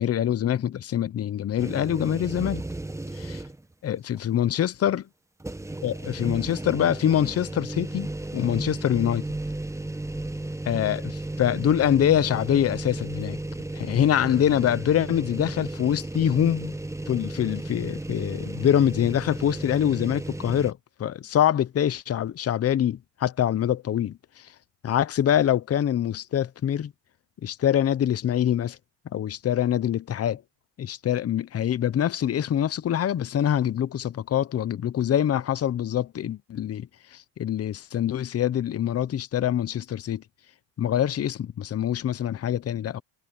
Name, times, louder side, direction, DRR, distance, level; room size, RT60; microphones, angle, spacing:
voice 1, 0.0-2.6 3.1-3.4 3.8-5.1 5.8-9.3 10.6-13.4 13.7-16.8 17.1-24.5 24.8-26.9 27.4-28.8 29.1-30.4 30.8-40.2 40.8-43.0, left 10 dB, 30° left, 0.8 m, -25 dB
sound 1, 1.6-3.7 4.2-4.3 5.4-20.7, right 2 dB, 5° right, 1.1 m, -34 dB
cardioid pair, 115°, 49 cm